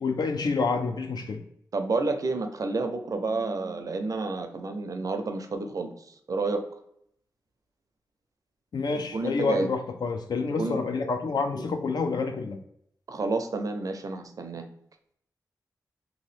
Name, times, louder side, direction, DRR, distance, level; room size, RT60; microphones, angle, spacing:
voice 1, 0.0-1.4 8.7-12.6, left 4 dB, 70° left, 5 dB, 0.5 m, -28 dB
voice 2, 1.7-6.6 8.9-9.7 10.6-10.8 13.1-14.7, right 3 dB, 55° right, 6 dB, 0.5 m, -30 dB
2.9 x 2.6 x 3.2 m, 0.71 s
cardioid pair, 75°, 7 cm